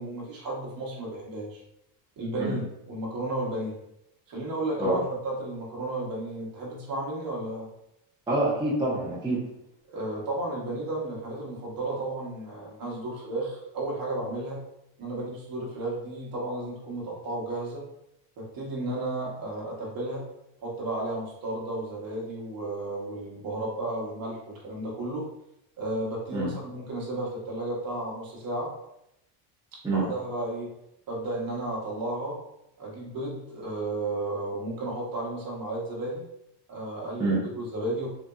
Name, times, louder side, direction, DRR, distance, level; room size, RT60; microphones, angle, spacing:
voice 1, 0.0-1.6 2.2-3.7 4.3-7.7 9.9-14.6 15.0-17.8 18.4-20.3 20.6-25.3 25.8-28.7 29.8-30.7 31.1-32.4 32.8-36.2 36.7-38.1, right 2 dB, 45° right, -3 dB, 1.2 m, -33 dB
voice 2, 8.3-9.4 26.3-26.5 29.8-30.0 37.2-37.4, right 2 dB, 10° right, -7 dB, 0.8 m, -26 dB
3.9 x 2.6 x 2.3 m, 0.82 s
cardioid pair, 120°, 49 cm